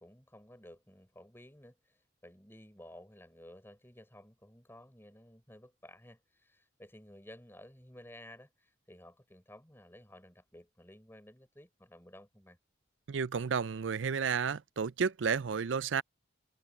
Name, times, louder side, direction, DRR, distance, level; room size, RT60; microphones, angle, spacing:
voice 1, 0.0-12.6, left 1 dB, 10° left, 4.9 m, -55 dB
voice 2, 13.1-16.0, right 6 dB, 80° right, 0.5 m, -32 dB
head